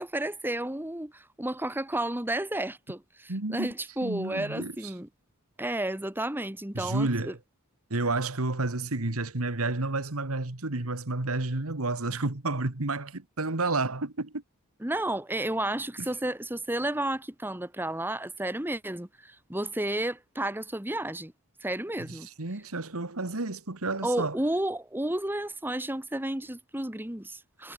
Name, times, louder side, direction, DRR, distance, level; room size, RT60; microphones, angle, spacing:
voice 1, 0.0-5.1 5.6-7.3 14.8-21.3 21.6-22.3 24.0-27.7, right 1 dB, 10° right, 1.5 m, -32 dB
voice 2, 3.3-3.7 4.0-4.7 6.8-7.4 7.9-14.4 16.0-16.1 22.4-24.4, right 2 dB, 75° right, 1.9 m, -30 dB
head